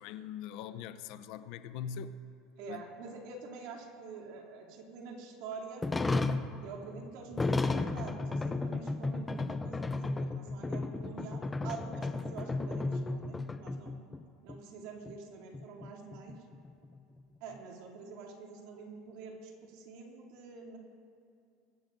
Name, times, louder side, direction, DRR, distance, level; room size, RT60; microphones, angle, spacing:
voice 1, 0.0-2.2 2.7-2.8, left 8 dB, 60° left, 0.5 m, -42 dB
voice 2, 2.6-5.9 6.6-14.0 14.4-16.4 17.4-20.8, right 4 dB, 65° right, 2.7 m, -46 dB
sound 1, 5.8-14.2 14.5-14.6 15.1-15.2 15.5-17.2, left 3 dB, 10° left, 0.5 m, -33 dB
23.0 x 15.0 x 2.6 m
supercardioid pair, 145°, 0 cm